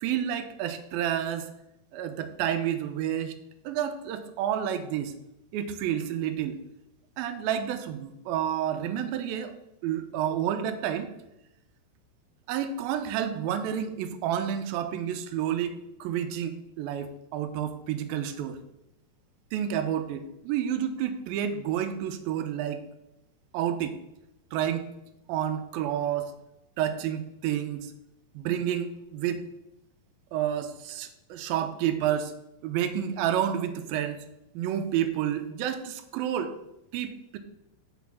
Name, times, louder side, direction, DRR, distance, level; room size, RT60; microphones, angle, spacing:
voice 1, 0.0-1.5 1.9-3.3 3.6-5.1 5.5-6.6 7.2-9.5 9.8-11.1 12.5-18.6 19.5-22.8 23.5-24.0 24.5-24.9 25.3-26.3 26.8-27.9 28.4-29.4 30.3-32.3 32.6-34.2 34.5-36.6 36.9-37.4, right 10 dB, 85° right, 9 dB, 2.5 m, -30 dB
6.2 x 6.0 x 7.3 m, 0.88 s
omnidirectional pair, 4.2 m